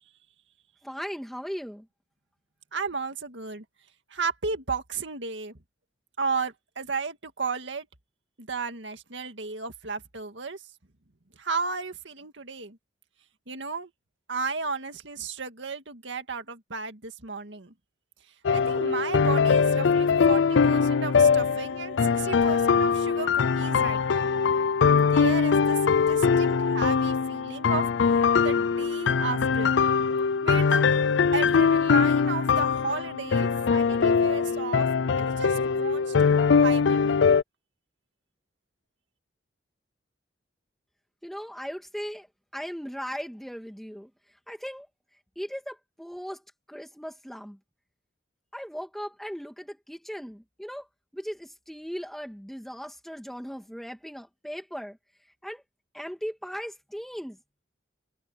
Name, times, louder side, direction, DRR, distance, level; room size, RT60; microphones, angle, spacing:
voice 1, 0.8-1.9 41.2-42.3 42.5-44.1 44.5-44.9 45.4-46.4 46.7-47.6 48.5-50.9 51.1-55.0 55.4-55.6 55.9-57.4, equal, ahead, 2.5 m, -38 dB
voice 2, 2.7-3.6 4.1-5.6 6.2-7.9 8.4-10.6 11.4-12.8 13.5-13.9 14.3-17.7 18.5-24.3 24.8-27.9 28.2-29.7 30.4-30.8 31.3-34.9 35.2-37.2, right 4 dB, 75° right, 2.0 m, -34 dB
sound 1, 18.5-37.4, left 5 dB, 70° left, 0.5 m, -22 dB
head